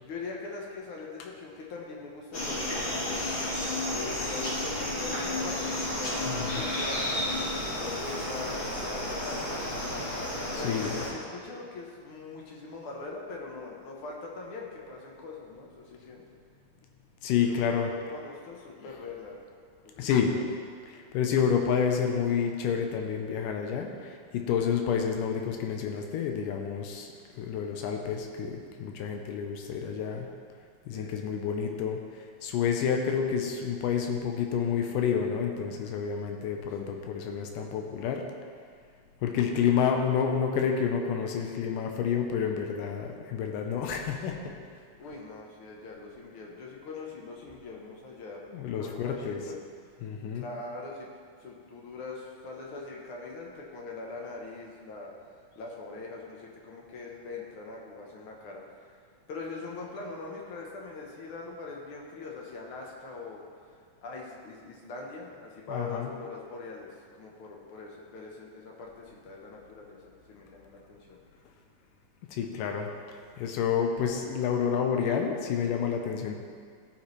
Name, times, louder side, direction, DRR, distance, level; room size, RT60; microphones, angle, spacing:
voice 1, 0.1-3.2 3.9-7.1 7.7-9.5 10.4-16.2 17.4-19.4 19.8-20.4 30.9-31.3 45.0-48.4 48.7-49.6 50.3-51.1 51.4-55.1 55.5-58.9 59.3-63.4 64.0-66.9 67.2-71.2, left 3 dB, 65° left, -2 dB, 1.3 m, -42 dB
sound 1, 2.3-11.1, left 1 dB, 45° left, 1.8 m, -32 dB
voice 2, 6.3-6.6 10.5-10.9 17.2-17.9 20.0-20.4 20.9-27.1 27.4-30.3 30.9-38.2 39.2-44.5 48.5-49.4 50.0-50.4 65.7-66.1 72.3-72.9 73.4-76.4, left 7 dB, 90° left, 3 dB, 2.3 m, -29 dB
14.5 x 5.8 x 3.2 m, 2.1 s
omnidirectional pair, 3.7 m